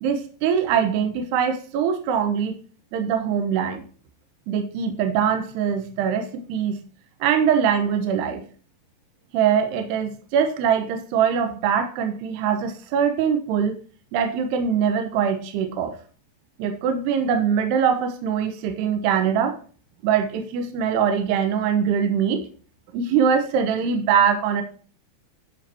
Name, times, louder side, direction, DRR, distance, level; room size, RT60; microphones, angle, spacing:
voice 1, 0.0-2.6 2.9-3.8 4.5-6.8 7.2-8.4 9.3-13.7 14.1-16.0 16.6-19.6 20.0-22.4 22.9-24.6, right 7 dB, 75° right, 6 dB, 3.0 m, -22 dB
12.0 x 5.7 x 4.4 m, 0.40 s
omnidirectional pair, 5.1 m